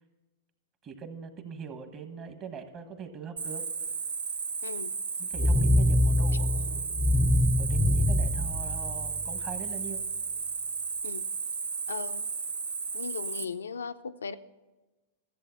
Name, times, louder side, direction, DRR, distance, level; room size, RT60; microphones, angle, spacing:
voice 1, 0.8-3.6 5.2-7.1 7.6-10.0, right 6 dB, 35° right, 8 dB, 1.3 m, -42 dB
Cricket, 3.4-13.4, right 5 dB, 80° right, 0.7 m, -34 dB
sound 1, 5.4-9.4, left 1 dB, 5° left, 0.5 m, -24 dB
sound 2, 5.4-9.3, right 6 dB, 55° right, 1.5 m, -49 dB
voice 2, 11.9-12.3 12.9-14.4, left 5 dB, 85° left, 12 dB, 0.5 m, -37 dB
14.0 x 7.6 x 5.8 m, 1.2 s
hypercardioid pair, 105°, 0 cm